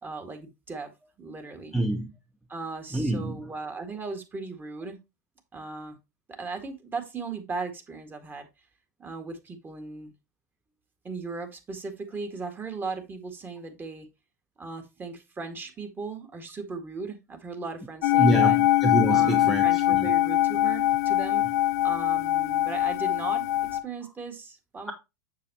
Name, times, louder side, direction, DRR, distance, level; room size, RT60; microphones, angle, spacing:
voice 1, 0.0-0.9 1.2-1.7 2.5-5.0 5.5-6.0 6.4-8.5 9.0-10.1 11.0-14.1 14.6-18.6 19.1-21.5 21.8-24.9, right 4 dB, 20° right, 1.9 m, -37 dB
voice 2, 1.7-2.1 2.9-3.4 18.2-20.1, right 1 dB, ahead, 0.9 m, -26 dB
sound 1, 18.0-23.8, left 14 dB, 65° left, 0.9 m, -23 dB
7.4 x 6.6 x 2.9 m
hypercardioid pair, 100°, 10 cm